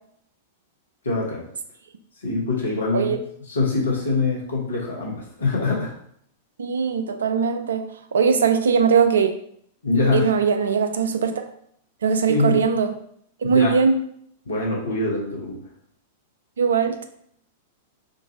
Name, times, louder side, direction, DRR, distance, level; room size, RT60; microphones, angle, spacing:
voice 1, 1.0-1.5 2.2-3.1 3.4-5.9 9.8-10.3 12.3-12.6 13.4-13.8 14.5-15.6, left 3 dB, 70° left, -3 dB, 1.1 m, -24 dB
voice 2, 6.6-7.9 8.1-9.3 10.1-11.4 12.0-12.9 13.4-14.0 16.6-17.1, right 6 dB, 65° right, 8 dB, 0.3 m, -20 dB
3.7 x 2.5 x 2.7 m, 0.67 s
figure-of-eight pair, 95°, 0 cm